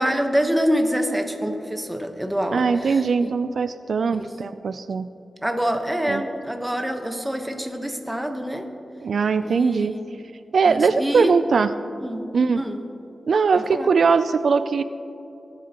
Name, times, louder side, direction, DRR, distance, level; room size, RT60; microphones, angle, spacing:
voice 1, 0.0-3.3 4.1-4.3 5.4-8.7 9.4-10.0 10.7-11.3 12.0-12.2 12.5-12.8 13.7-13.9, equal, 10° right, 5 dB, 1.0 m, -26 dB
voice 2, 2.5-5.1 6.1-6.2 9.0-10.0 10.5-11.7 12.3-12.6 13.3-14.8, right 5 dB, 70° right, 11 dB, 0.3 m, -20 dB
19.0 x 11.0 x 2.9 m, 2.9 s
wide cardioid pair, 100°, 0 cm